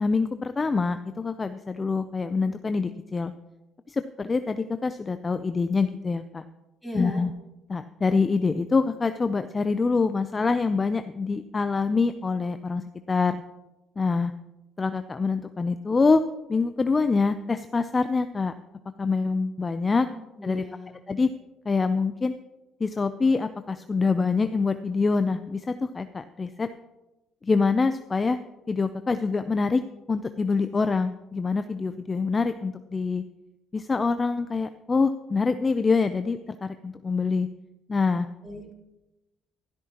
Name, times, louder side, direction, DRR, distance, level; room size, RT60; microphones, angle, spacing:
voice 1, 0.0-3.3 3.9-6.4 6.9-7.3 7.7-13.4 14.0-14.3 14.8-16.2 16.5-18.5 19.0-20.1 20.4-20.6 21.1-21.3 21.7-22.3 22.8-26.7 27.4-28.4 28.7-29.8 30.1-33.2 33.7-37.5 37.9-38.3, left 4 dB, 30° left, 10 dB, 0.4 m, -25 dB
voice 2, 6.8-7.3 20.1-21.2 38.4-38.7, equal, 5° left, -3 dB, 3.9 m, -39 dB
13.0 x 12.0 x 2.9 m, 0.98 s
supercardioid pair, 80°, 0 cm